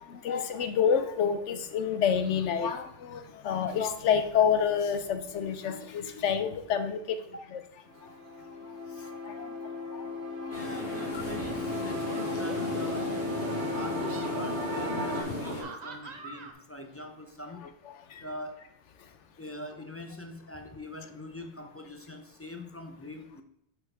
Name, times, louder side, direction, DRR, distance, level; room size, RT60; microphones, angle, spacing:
voice 1, 0.1-7.2 7.5-7.6 9.3-9.5 9.9-10.0, left 7 dB, 90° left, 9 dB, 1.1 m, -28 dB
sound 1, 7.9-15.2, left 3 dB, 75° right, 1.5 m, -35 dB
sound 2, 10.5-15.6, left 1 dB, 60° left, 1.9 m, -36 dB
voice 2, 10.5-13.3 13.7-17.7 18.2-18.7 19.4-23.4, left 1 dB, 20° left, 5 dB, 0.4 m, -43 dB
sound 3, 11.0-11.2 12.0-13.4 13.9-14.3 15.2-16.5, right 3 dB, 40° right, 0.8 m, -45 dB
6.6 x 4.5 x 4.9 m, 0.75 s
omnidirectional pair, 1.2 m